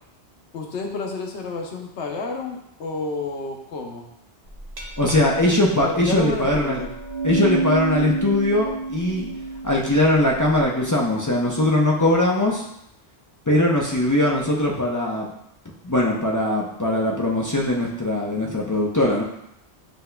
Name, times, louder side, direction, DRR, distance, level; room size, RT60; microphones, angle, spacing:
voice 1, 0.5-4.1 5.8-6.9, left 3 dB, 85° left, 2 dB, 1.0 m, -30 dB
Glass, 4.5-10.6, right 3 dB, 45° right, 0.7 m, -29 dB
voice 2, 5.0-6.8 7.2-9.3 9.6-12.7 13.5-15.3 15.8-19.2, left 1 dB, 30° left, -3 dB, 0.3 m, -21 dB
7.7 x 2.8 x 2.2 m, 0.78 s
omnidirectional pair, 1.1 m